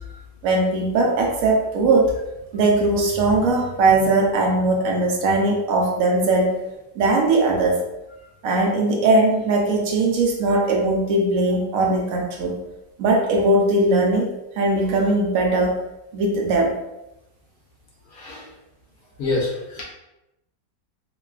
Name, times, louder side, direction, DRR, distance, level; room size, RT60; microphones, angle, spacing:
voice 1, 0.4-2.1 2.5-6.5 7.0-7.8 8.4-12.6 13.0-14.3 14.6-15.8 16.1-16.7, right 2 dB, 70° right, -1 dB, 0.8 m, -19 dB
voice 2, 18.1-18.5 19.2-19.8, left 2 dB, 65° left, -3 dB, 1.0 m, -26 dB
3.1 x 2.2 x 2.3 m, 0.94 s
omnidirectional pair, 1.8 m